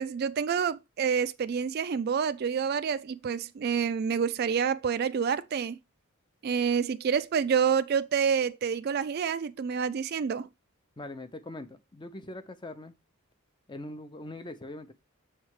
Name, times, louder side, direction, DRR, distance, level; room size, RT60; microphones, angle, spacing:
voice 1, 0.0-5.8 6.4-10.5, right 7 dB, 45° right, 0.3 m, -28 dB
voice 2, 11.0-12.9 13.7-14.9, left 1 dB, 20° left, 0.6 m, -42 dB
7.1 x 3.3 x 4.7 m
head